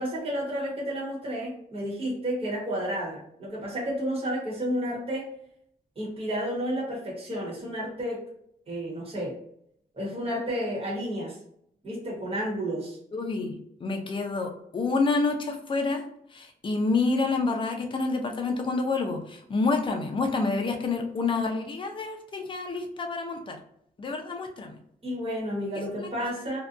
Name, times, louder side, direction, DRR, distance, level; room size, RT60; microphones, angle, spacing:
voice 1, 0.0-5.3 6.0-8.3 8.7-9.4 9.9-11.4 11.8-13.0 25.0-26.6, equal, 35° right, -5 dB, 1.1 m, -31 dB
voice 2, 13.1-16.0 16.3-23.6 24.0-24.7 26.0-26.1, left 3 dB, 30° left, 3 dB, 0.5 m, -28 dB
2.5 x 2.2 x 2.4 m, 0.71 s
wide cardioid pair, 155°, 16 cm